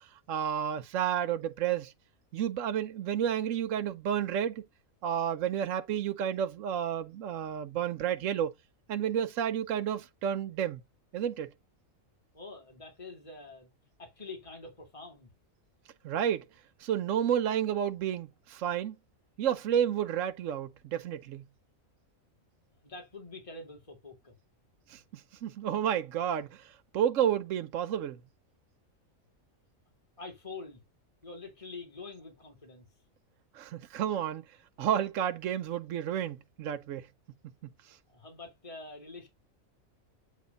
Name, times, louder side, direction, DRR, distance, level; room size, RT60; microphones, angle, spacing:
voice 1, 0.0-1.9 2.3-4.6 5.0-8.5 8.9-10.8 11.1-11.5 16.0-16.5 16.8-18.9 19.4-21.4 24.9-28.2 33.5-34.4 34.8-37.1 37.9-38.0, right 9 dB, 70° right, 1.0 m, -31 dB
voice 2, 12.3-13.7 14.0-15.3 22.8-24.3 30.2-30.8 31.2-32.9 38.1-39.3, left 3 dB, 25° left, 2.4 m, -46 dB
8.3 x 3.1 x 5.2 m
omnidirectional pair, 1.4 m